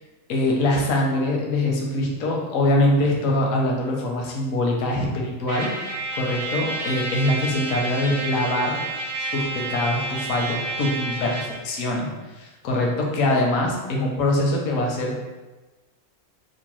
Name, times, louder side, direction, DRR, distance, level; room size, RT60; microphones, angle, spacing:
voice 1, 0.3-5.7 6.1-8.8 9.3-12.1 12.4-15.2, left 1 dB, 80° left, -1 dB, 1.0 m, -23 dB
Trumpet, 5.5-11.6, right 2 dB, 75° right, 0.9 m, -30 dB
2.9 x 2.1 x 3.0 m, 1.2 s
omnidirectional pair, 1.4 m